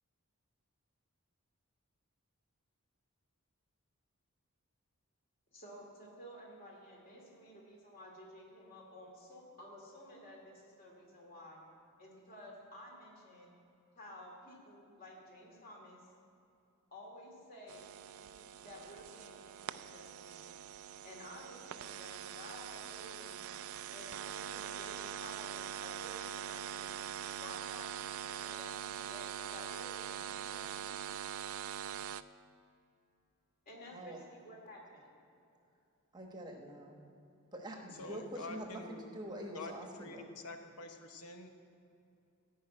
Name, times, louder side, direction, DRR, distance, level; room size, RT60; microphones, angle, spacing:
voice 1, 5.5-11.6 12.0-13.5 14.0-16.1 16.9-17.9 18.2-20.5 21.0-23.4 23.9-27.1 27.4-31.1 33.7-35.1, equal, 40° left, -1 dB, 2.4 m, -53 dB
sound 1, 17.7-32.2, right 9 dB, 70° right, 0.3 m, -43 dB
voice 2, 36.1-37.0 37.5-40.3, right 1 dB, 20° right, 2 dB, 1.0 m, -45 dB
voice 3, 38.0-39.1 39.5-39.7 40.0-41.5, left 2 dB, 90° left, 5 dB, 0.8 m, -47 dB
14.5 x 5.5 x 8.7 m, 2.6 s
head